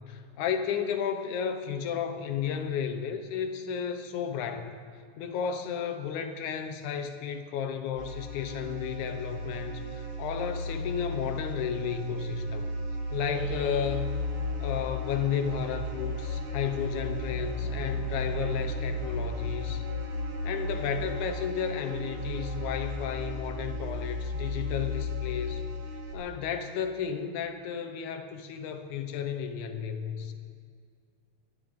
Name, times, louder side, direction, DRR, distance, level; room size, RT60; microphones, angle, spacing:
voice 1, 0.1-4.8 5.2-12.7 13.1-14.2 14.6-19.8 20.4-25.6 26.1-30.3, left 8 dB, 80° left, 6 dB, 2.4 m, -33 dB
sound 1, 8.0-26.1, left 1 dB, 50° right, 2.6 m, -34 dB
27.0 x 10.5 x 3.7 m, 2.2 s
omnidirectional pair, 3.4 m